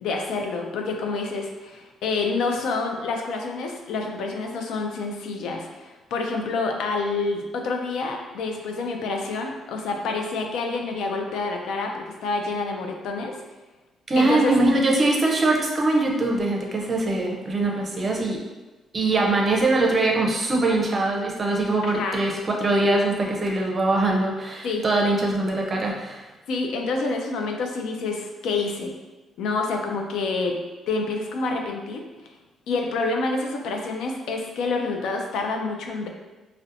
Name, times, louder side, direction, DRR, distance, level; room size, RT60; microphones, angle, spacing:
voice 1, 0.0-13.4 14.2-14.5 21.8-22.2 24.6-24.8 26.5-28.9 29.4-30.6 30.9-32.0 32.7-36.1, left 3 dB, 80° left, 2 dB, 0.3 m, -28 dB
voice 2, 14.1-18.4 18.9-26.2, right 2 dB, 35° right, -1 dB, 0.5 m, -22 dB
2.6 x 2.1 x 2.5 m, 1.2 s
cardioid pair, 90°, 0 cm